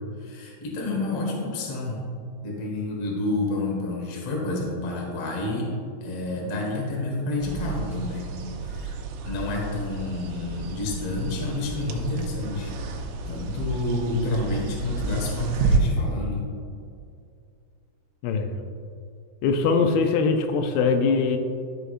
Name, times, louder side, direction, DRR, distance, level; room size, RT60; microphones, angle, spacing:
voice 1, 0.2-2.0 2.4-5.7 6.0-8.4 8.6-9.0 9.2-12.7 13.2-16.5, left 2 dB, 60° left, -2 dB, 1.7 m, -29 dB
sound 1, 7.4-15.8, right 4 dB, 85° right, 3.1 m, -31 dB
voice 2, 18.2-18.6 19.4-21.4, left 4 dB, 85° left, 6 dB, 2.9 m, -22 dB
12.5 x 6.5 x 2.5 m, 2.5 s
omnidirectional pair, 5.2 m